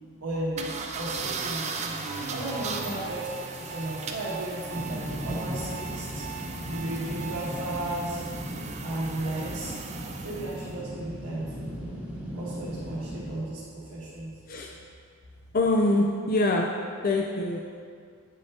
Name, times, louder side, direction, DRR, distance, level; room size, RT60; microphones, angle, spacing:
voice 1, 0.2-1.6 2.3-3.3 3.5-6.2 6.6-8.2 8.8-9.7 10.2-11.8 12.3-14.3, right 1 dB, 90° right, -9 dB, 1.3 m, -34 dB
sound 1, 0.6-10.7, right 4 dB, 30° right, 0.4 m, -37 dB
sound 2, 2.0-7.5, right 5 dB, 70° right, 1.0 m, -40 dB
sound 3, 4.7-13.3, equal, 5° right, 0.9 m, -37 dB
voice 2, 15.5-16.7 17.0-17.6, left 2 dB, 45° left, 0 dB, 0.4 m, -24 dB
9.0 x 6.4 x 2.8 m, 2.1 s
head